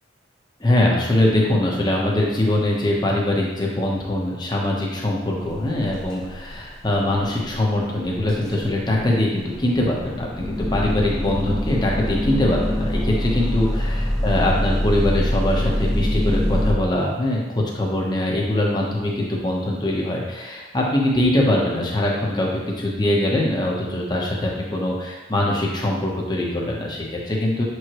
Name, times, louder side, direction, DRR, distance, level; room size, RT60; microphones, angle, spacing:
voice 1, 0.6-27.6, left 1 dB, 25° left, -2 dB, 1.0 m, -22 dB
sound 1, 5.5-6.2 6.5-6.8 7.2-7.3 7.5-7.6 8.3-16.7, equal, 5° left, 0.7 m, -24 dB
7.2 x 4.8 x 3.1 m, 1.2 s
head